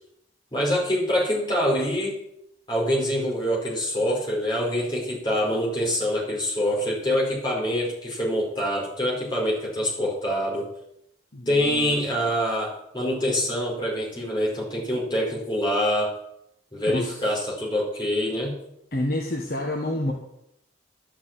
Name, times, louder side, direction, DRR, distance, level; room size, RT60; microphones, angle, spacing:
voice 1, 0.5-2.2 2.7-10.7 11.5-16.1 16.7-18.6, equal, 20° left, -4 dB, 4.8 m, -25 dB
voice 2, 11.3-12.1 16.8-17.4 18.9-20.1, left 1 dB, 50° left, 0 dB, 1.5 m, -29 dB
11.5 x 6.8 x 9.0 m, 0.78 s
head